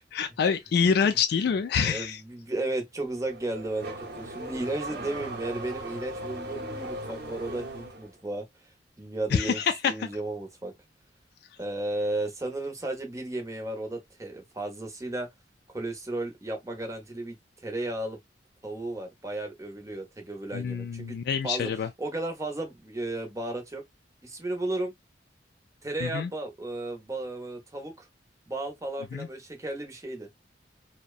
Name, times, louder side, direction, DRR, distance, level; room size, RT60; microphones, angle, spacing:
voice 1, 0.0-2.2 9.3-9.9 20.5-21.9 26.0-26.3 29.1-29.3, left 6 dB, 60° left, 0.3 m, -26 dB
voice 2, 1.8-8.5 9.0-9.6 9.9-10.7 11.6-15.3 15.7-17.4 17.6-18.2 18.6-21.2 21.4-23.8 24.2-24.9 25.8-28.1 28.5-30.3, right 2 dB, 20° right, 0.7 m, -34 dB
Car / Accelerating revving vroom, 3.1-8.1, right 1 dB, 65° right, 0.8 m, -38 dB
2.7 x 2.1 x 2.3 m
head